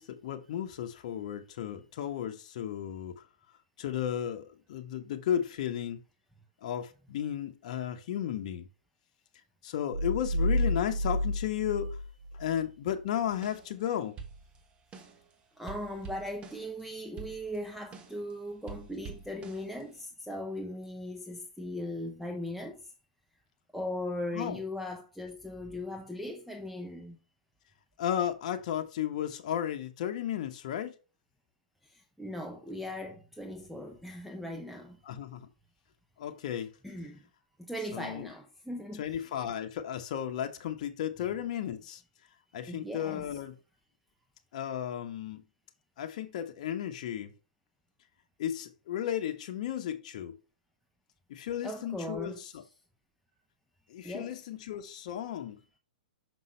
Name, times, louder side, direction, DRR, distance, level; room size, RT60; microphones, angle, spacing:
voice 1, 0.0-3.2 3.8-6.0 6.6-8.7 9.6-11.9 12.3-14.2 24.3-24.6 28.0-30.9 35.0-35.4 36.2-36.7 37.9-38.3 39.0-42.0 42.5-43.5 44.5-45.4 46.0-47.3 48.4-50.4 51.3-52.6 53.9-55.6, left 10 dB, 55° left, 0.8 m, -34 dB
sound 1, 9.9-12.7, equal, 85° right, 1.7 m, -30 dB
sound 2, 13.3-13.9 14.2-15.3 15.7-18.3 18.7-20.0, right 6 dB, 25° right, 1.2 m, -47 dB
voice 2, 15.6-22.9 23.7-27.2 31.8-35.0 36.8-37.3 37.6-39.4 42.7-43.4 51.6-52.7 54.0-54.4, left 1 dB, ahead, 0.7 m, -39 dB
6.2 x 5.5 x 3.1 m
hypercardioid pair, 120°, 4 cm